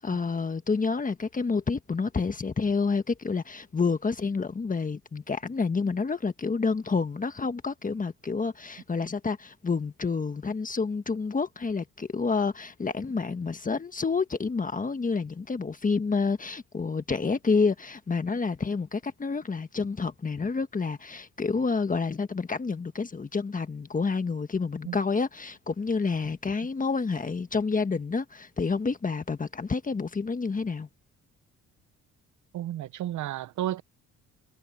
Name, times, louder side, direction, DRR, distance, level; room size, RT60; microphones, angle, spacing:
voice 1, 0.0-30.9, left 4 dB, 25° left, 1.4 m, -29 dB
voice 2, 32.5-33.8, right 12 dB, 75° right, 0.8 m, -32 dB
cardioid pair, 90°, 30 cm